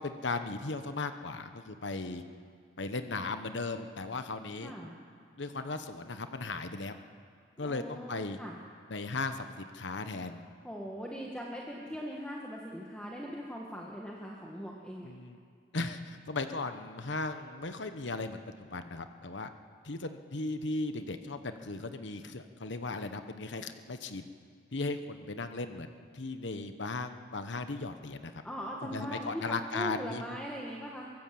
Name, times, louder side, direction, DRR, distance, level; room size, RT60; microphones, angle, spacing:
voice 1, 0.0-2.2 2.8-4.7 5.4-7.0 7.6-8.4 8.9-10.5 15.0-15.4 15.7-19.5 19.8-24.3 24.7-28.3 28.8-30.4, left 3 dB, 75° left, 8 dB, 1.1 m, -37 dB
voice 2, 4.6-5.0 7.6-8.6 10.6-15.1 28.4-31.1, equal, 5° left, -2 dB, 1.7 m, -40 dB
23.5 x 18.0 x 7.7 m, 2.1 s
head